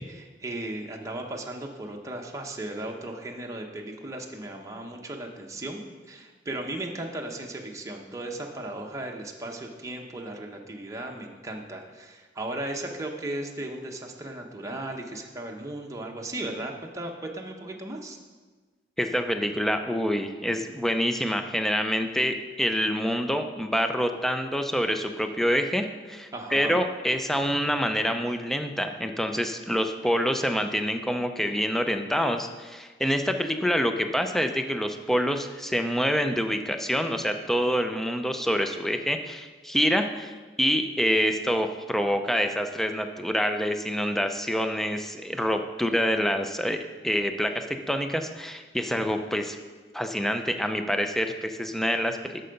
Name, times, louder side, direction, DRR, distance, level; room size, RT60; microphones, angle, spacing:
voice 1, 0.0-5.8 6.1-18.2 26.3-26.8, right 1 dB, 20° right, 1 dB, 0.9 m, -36 dB
voice 2, 19.0-40.3 40.6-49.6 49.9-52.5, equal, ahead, 6 dB, 0.5 m, -26 dB
8.1 x 6.7 x 5.2 m, 1.3 s
head